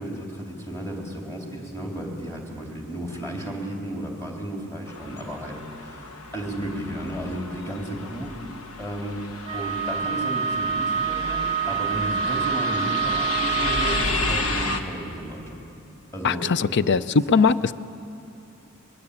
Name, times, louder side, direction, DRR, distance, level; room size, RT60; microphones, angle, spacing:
voice 1, 0.0-8.3 8.8-9.2 9.5-15.6 16.1-16.5, right 1 dB, 15° left, 0 dB, 3.8 m, -33 dB
sound 1, 4.9-14.8, left 2 dB, 75° left, 1.4 m, -32 dB
Wind instrument woodwind instrument, 9.5-14.2, right 7 dB, 30° right, 0.6 m, -26 dB
voice 2, 16.2-17.7, left 5 dB, 55° left, 15 dB, 0.5 m, -20 dB
23.5 x 21.0 x 8.6 m, 2.6 s
head